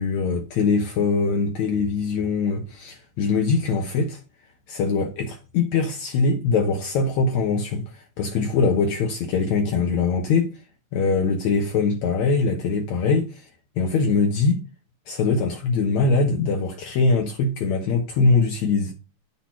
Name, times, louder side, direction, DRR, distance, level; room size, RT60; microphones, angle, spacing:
voice 1, 0.0-4.2 4.7-10.5 10.9-13.5 13.8-14.6 15.1-18.9, left 4 dB, 70° left, 2.3 m, -22 dB
8.5 x 4.1 x 5.6 m
omnidirectional pair, 3.5 m